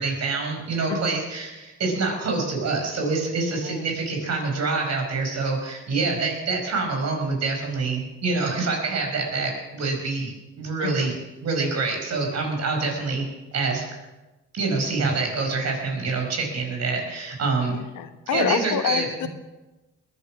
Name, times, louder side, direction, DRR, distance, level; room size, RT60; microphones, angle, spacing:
voice 1, 0.0-11.2 11.4-13.3 13.5-13.8 14.5-17.8 18.3-19.0, right 3 dB, 60° right, 2 dB, 5.1 m, -26 dB
voice 2, 3.5-3.8 10.8-11.1 17.9-19.3, left 9 dB, 80° left, 9 dB, 1.3 m, -28 dB
20.5 x 11.0 x 6.1 m, 1.1 s
cardioid pair, 90°, 30 cm